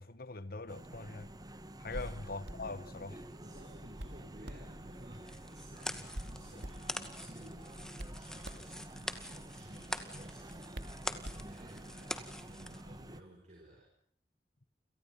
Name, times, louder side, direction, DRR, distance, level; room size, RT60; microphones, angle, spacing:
voice 1, 0.0-1.3 1.8-3.2 6.0-6.1 6.4-6.6, left 3 dB, 60° left, 1.6 m, -43 dB
sound 1, 0.7-13.2, right 1 dB, 25° right, 1.6 m, -49 dB
voice 2, 1.8-2.3 3.2-10.7 11.0-13.9, right 1 dB, 45° right, 6.9 m, -55 dB
Hands, 1.8-11.9, right 1 dB, 85° right, 2.7 m, -49 dB
sound 2, 5.2-12.8, left 1 dB, 5° left, 2.1 m, -44 dB
29.5 x 28.0 x 5.6 m
head